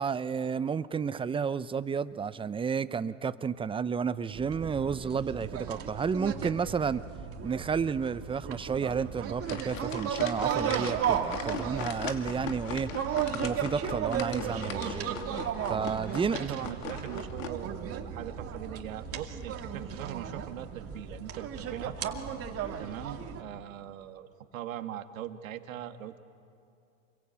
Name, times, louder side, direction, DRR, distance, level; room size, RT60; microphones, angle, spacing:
voice 1, 0.0-7.0 7.4-12.9 13.4-15.1 15.7-16.7, right 6 dB, 15° right, 15 dB, 0.6 m, -31 dB
sound 1, 4.3-23.4, right 8 dB, 35° right, 2.4 m, -35 dB
sound 2, 9.4-17.5, left 7 dB, 70° left, 2.7 m, -40 dB
voice 2, 16.1-22.0 22.8-26.2, right 11 dB, 80° right, 8 dB, 1.7 m, -41 dB
28.0 x 22.0 x 8.8 m, 2.5 s
hypercardioid pair, 105°, 40 cm